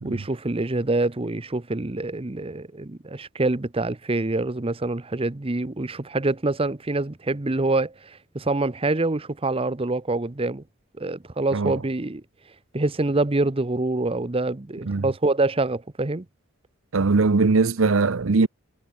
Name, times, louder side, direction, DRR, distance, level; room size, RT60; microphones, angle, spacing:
voice 1, 0.0-10.6 11.0-12.2 12.7-16.2, right 2 dB, 25° right, 0.8 m, -26 dB
voice 2, 16.9-18.5, right 4 dB, 65° right, 0.7 m, -20 dB
head